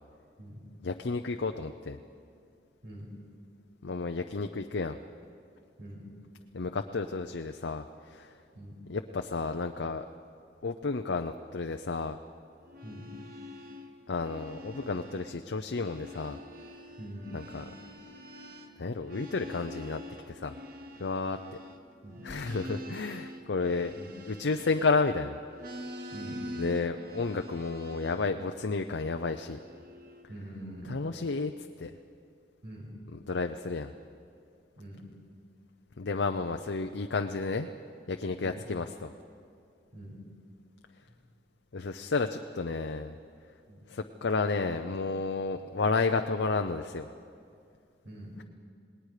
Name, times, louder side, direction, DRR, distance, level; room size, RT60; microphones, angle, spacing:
voice 1, 0.8-2.0 3.8-5.0 6.5-8.3 8.9-10.0 10.6-12.2 14.1-16.4 17.3-17.6 18.8-20.0 20.3-20.5 21.0-21.4 22.2-24.0 24.3-25.4 26.6-29.6 30.9-31.5 31.8-31.9 33.3-33.9 36.0-37.7 38.1-39.1 41.7-43.1 43.9-47.1, left 4 dB, 80° left, 6 dB, 0.6 m, -31 dB
sound 1, 12.6-15.4 15.7-25.2 25.5-28.3 29.0-30.2, left 1 dB, 50° right, 1.4 m, -45 dB
voice 2, 12.8-13.2 17.0-17.4 22.0-22.7 24.0-24.1 26.1-26.4 30.3-31.0 32.6-32.9 34.8-35.1 38.4-38.7 39.9-40.2 43.7-43.8 48.0-48.3, right 1 dB, 80° right, -3 dB, 6.6 m, -44 dB
28.0 x 19.5 x 5.0 m, 2.3 s
head